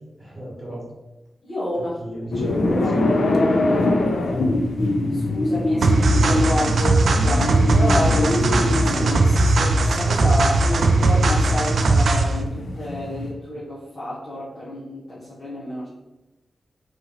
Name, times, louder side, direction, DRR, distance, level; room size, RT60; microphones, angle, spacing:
voice 1, 0.2-0.9 1.7-2.9 4.3-4.8, right 1 dB, 10° right, -7 dB, 1.4 m, -35 dB
voice 2, 1.4-1.9 2.8-3.1 5.0-15.9, left 1 dB, 30° left, -9 dB, 0.8 m, -29 dB
sound 1, 2.3-13.3, left 2 dB, 65° left, 0.5 m, -24 dB
sound 2, 5.8-12.4, right 2 dB, 70° right, 0.3 m, -19 dB
3.0 x 2.9 x 3.8 m, 1.0 s
wide cardioid pair, 180°, 0 cm